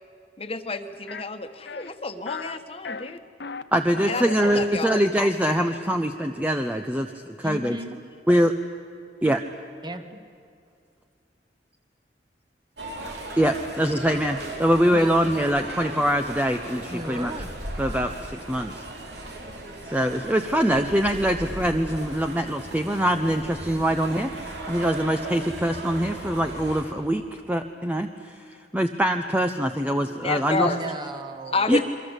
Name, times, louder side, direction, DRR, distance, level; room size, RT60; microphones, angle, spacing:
voice 1, 0.4-3.2 4.1-5.0 30.0-30.8 31.5-31.8, left 3 dB, 35° left, 8 dB, 1.4 m, -29 dB
sound 1, 1.1-1.2 1.7-1.9 2.3-2.6 2.8-3.6 3.9-4.4, left 5 dB, 75° left, 0.9 m, -36 dB
voice 2, 3.7-7.8 8.3-8.5 9.2-9.4 13.4-17.3 17.8-18.8 19.8-30.7 31.7-31.8, equal, 10° right, 5 dB, 0.8 m, -24 dB
voice 3, 7.4-8.0 9.8-10.2 14.9-15.2 16.9-17.5 30.5-31.8, right 1 dB, 25° right, 7 dB, 1.5 m, -35 dB
sound 2, 12.8-26.8, right 1 dB, 75° right, 3.9 m, -37 dB
28.5 x 23.5 x 8.2 m, 2.4 s
head